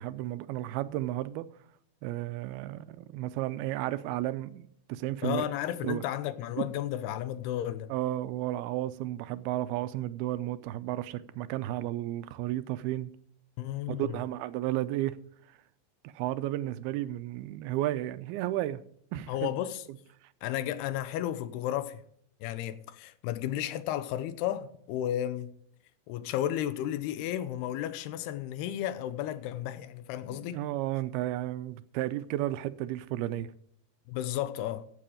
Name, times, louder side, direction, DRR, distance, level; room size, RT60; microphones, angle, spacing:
voice 1, 0.0-1.5 2.0-5.4 5.8-6.0 6.6-6.7 7.9-13.1 13.9-15.2 16.0-18.8 19.1-19.5 30.3-33.5, right 14 dB, 85° right, 2.5 m, -33 dB
voice 2, 5.2-7.9 13.6-14.1 19.3-19.8 20.4-22.0 22.4-25.6 26.1-30.6 34.1-34.9, left 12 dB, 90° left, 2.9 m, -33 dB
15.0 x 7.7 x 5.0 m
omnidirectional pair, 4.5 m